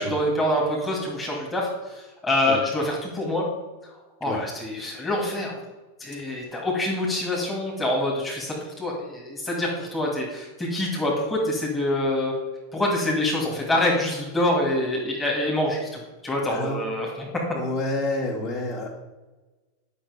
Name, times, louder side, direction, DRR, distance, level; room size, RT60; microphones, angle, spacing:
voice 1, 0.0-3.4 4.2-5.6 6.0-12.3 12.7-17.3, left 1 dB, 15° left, -3 dB, 2.2 m, -26 dB
voice 2, 6.2-6.5 16.5-16.9 17.5-19.0, left 2 dB, 45° left, -3 dB, 2.8 m, -29 dB
10.0 x 5.9 x 5.1 m, 1.2 s
figure-of-eight pair, 90°, 0 cm